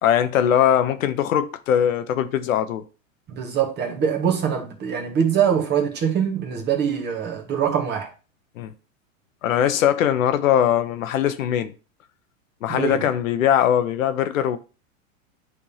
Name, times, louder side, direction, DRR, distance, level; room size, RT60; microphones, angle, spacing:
voice 1, 0.0-2.8 8.6-8.7 9.4-11.7 12.6-14.6, left 10 dB, 75° left, 0.9 m, -21 dB
voice 2, 3.3-8.1 12.7-13.1, right 8 dB, 25° right, 1.5 m, -23 dB
10.5 x 3.6 x 2.8 m
hypercardioid pair, 130°, 41 cm